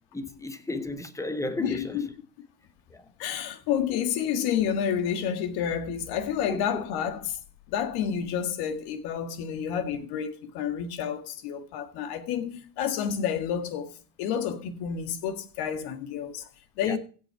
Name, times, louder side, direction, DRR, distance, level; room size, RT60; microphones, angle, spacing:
voice 1, 0.1-2.0 2.9-3.0 6.5-6.8 16.8-17.0, left 2 dB, 5° left, 1.0 m, -33 dB
voice 2, 1.6-2.1 3.2-7.4 7.7-16.5 16.8-17.0, left 8 dB, 50° left, 1.9 m, -29 dB
16.0 x 6.0 x 4.7 m
supercardioid pair, 120°, 49 cm